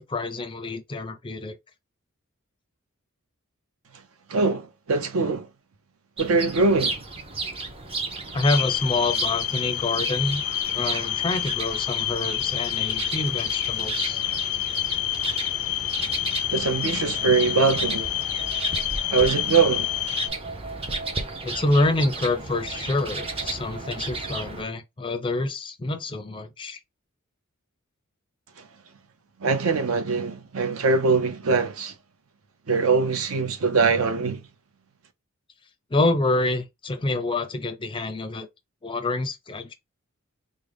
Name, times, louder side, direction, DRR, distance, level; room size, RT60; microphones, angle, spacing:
voice 1, 0.0-1.6 8.3-10.4 10.7-14.2 21.4-26.8 35.9-38.5 38.8-39.7, left 2 dB, 25° left, 0.5 m, -27 dB
voice 2, 4.3-5.5 6.2-7.0 16.5-18.1 19.1-19.9 29.4-31.9 32.7-34.4, right 4 dB, 65° right, 0.6 m, -22 dB
sound 1, 6.2-24.6, right 3 dB, 25° right, 0.6 m, -34 dB
sound 2, 8.4-20.3, left 14 dB, 80° left, 0.4 m, -28 dB
3.7 x 2.1 x 3.3 m
head